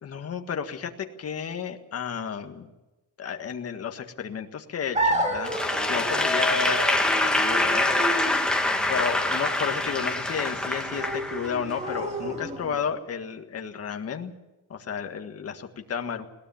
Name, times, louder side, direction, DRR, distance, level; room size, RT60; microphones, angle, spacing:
voice 1, 0.0-2.7 3.2-7.9 8.9-14.3 14.7-16.2, left 7 dB, 35° left, 5 dB, 1.8 m, -32 dB
sound 1, 4.9-12.9, right 1 dB, 15° right, 2.4 m, -31 dB
Applause / Crowd, 5.4-11.8, left 2 dB, ahead, 1.8 m, -25 dB
21.0 x 19.0 x 7.2 m, 1.1 s
cardioid pair, 180°, 40 cm